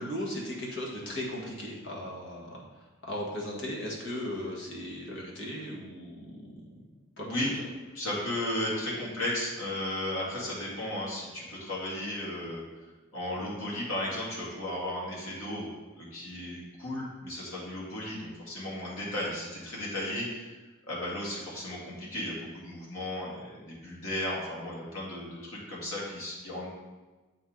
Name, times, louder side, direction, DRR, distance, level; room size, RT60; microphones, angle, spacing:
voice 1, 0.0-2.6 3.1-6.7 7.2-7.3, left 1 dB, 60° left, -3 dB, 1.7 m, -37 dB
voice 2, 7.9-12.6 13.1-15.7 16.0-20.5 20.9-26.7, left 1 dB, 85° left, -5 dB, 2.3 m, -35 dB
7.9 x 4.4 x 3.9 m, 1.2 s
head